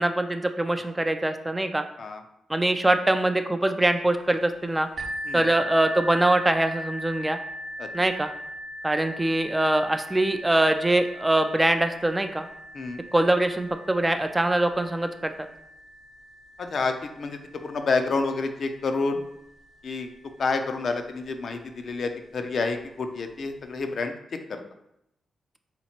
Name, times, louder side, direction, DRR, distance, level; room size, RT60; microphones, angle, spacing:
voice 1, 0.0-1.8 2.5-4.9 5.3-7.4 7.9-8.3 8.8-12.5 13.1-15.3, right 1 dB, 15° right, 7 dB, 0.3 m, -23 dB
sound 1, 5.0-20.5 21.3-21.4 21.9-22.0, equal, 45° right, 0.7 m, -39 dB
voice 2, 16.6-19.2 19.8-20.1 20.4-24.1 24.5-24.6, left 4 dB, 60° left, 6 dB, 0.5 m, -29 dB
3.8 x 2.9 x 4.3 m, 0.81 s
cardioid pair, 95°, 0 cm